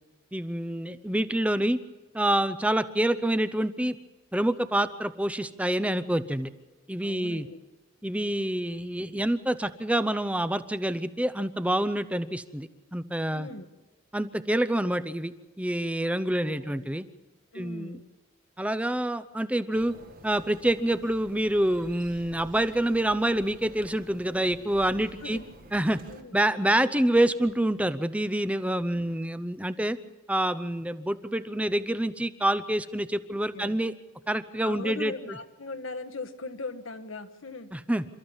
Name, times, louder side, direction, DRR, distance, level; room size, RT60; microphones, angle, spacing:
voice 1, 0.3-1.8 2.1-3.9 4.3-6.5 6.9-7.5 8.0-13.5 14.1-17.1 17.5-18.0 18.6-19.9 20.2-25.4 25.7-26.0 26.3-30.0 30.3-33.9 34.3-35.4 37.7-38.0, right 1 dB, 5° right, 13 dB, 0.7 m, -27 dB
voice 2, 7.0-7.6 13.3-13.7 16.6-16.8 17.5-18.0 25.2-25.4 26.1-26.4 33.5-33.8 34.6-37.7, left 3 dB, 70° left, 9 dB, 1.4 m, -39 dB
sound 1, 19.7-26.2, right 1 dB, 45° right, 1.6 m, -50 dB
28.5 x 14.0 x 7.2 m, 1.2 s
head